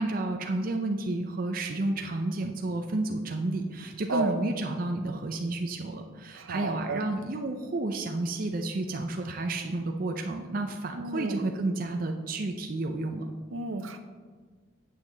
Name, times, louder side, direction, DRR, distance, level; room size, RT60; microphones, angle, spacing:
voice 1, 0.0-13.3, right 2 dB, 45° right, 4 dB, 0.5 m, -31 dB
voice 2, 6.3-7.0 11.0-11.4 13.5-14.0, right 3 dB, 85° right, 8 dB, 0.7 m, -32 dB
8.4 x 7.5 x 3.9 m, 1.5 s
head